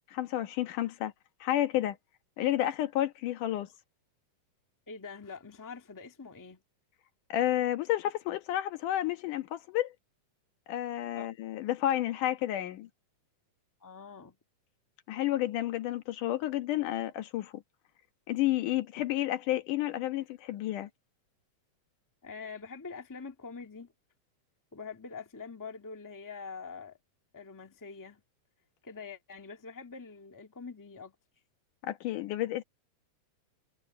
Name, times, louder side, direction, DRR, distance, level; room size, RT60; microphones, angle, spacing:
voice 1, 0.1-1.1 1.4-2.0 2.4-3.7 7.3-9.9 10.7-12.9 15.1-17.6 18.3-20.9 31.8-32.6, left 13 dB, 80° left, 2.8 m, -31 dB
voice 2, 4.9-6.6 11.1-11.3 13.8-14.4 22.2-23.9 24.7-27.0 27.3-28.2 28.8-31.1, left 5 dB, 10° left, 1.1 m, -44 dB
omnidirectional pair, 3.6 m